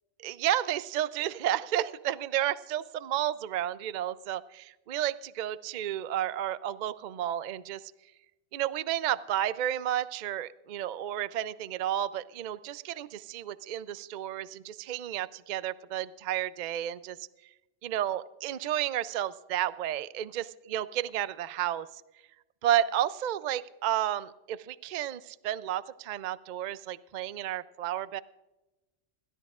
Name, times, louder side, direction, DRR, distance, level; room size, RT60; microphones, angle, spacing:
voice 1, 0.2-7.8 8.5-17.2 17.8-21.9 22.6-28.2, right 11 dB, 60° right, 16 dB, 0.5 m, -32 dB
28.0 x 13.0 x 2.4 m, 1.1 s
omnidirectional pair, 1.3 m